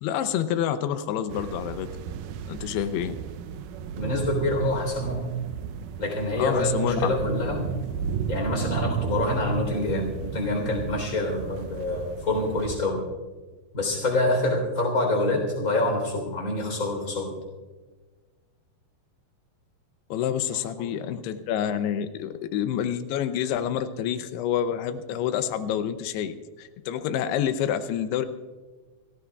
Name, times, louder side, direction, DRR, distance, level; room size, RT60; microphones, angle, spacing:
voice 1, 0.0-2.0 2.5-3.2 6.4-7.1 20.1-28.3, left 9 dB, 85° left, 10 dB, 2.7 m, -28 dB
sound 1, 1.3-12.8, right 7 dB, 85° right, 1.8 m, -34 dB
voice 2, 4.0-5.3 6.0-7.7 8.3-13.0 13.7-17.3 20.8-20.9, left 1 dB, 20° left, 1 dB, 3.6 m, -26 dB
29.0 x 15.5 x 2.3 m, 1.3 s
omnidirectional pair, 4.6 m